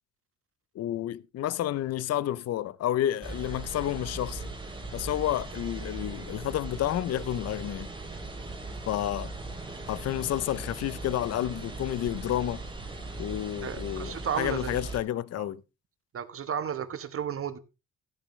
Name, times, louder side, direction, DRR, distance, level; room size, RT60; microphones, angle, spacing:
voice 1, 0.7-4.5 4.9-7.9 8.9-9.3 9.9-12.6 13.2-15.6, left 12 dB, 55° left, 0.5 m, -30 dB
sound 1, 3.2-15.0, right 2 dB, 15° right, 3.0 m, -39 dB
voice 2, 13.6-14.8 15.4-15.5 16.1-17.6, right 8 dB, 45° right, 1.2 m, -33 dB
14.5 x 8.9 x 3.1 m
cardioid pair, 90°, 30 cm